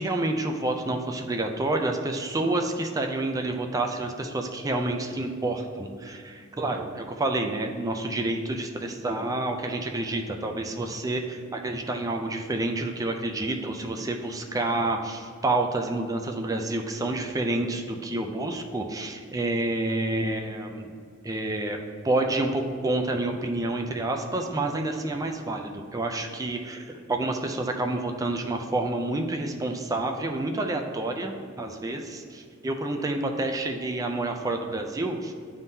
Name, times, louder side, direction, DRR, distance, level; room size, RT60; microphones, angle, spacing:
voice 1, 0.0-20.9 21.2-35.3, right 2 dB, 15° right, 4 dB, 0.4 m, -29 dB
9.4 x 3.6 x 2.7 m, 2.2 s
head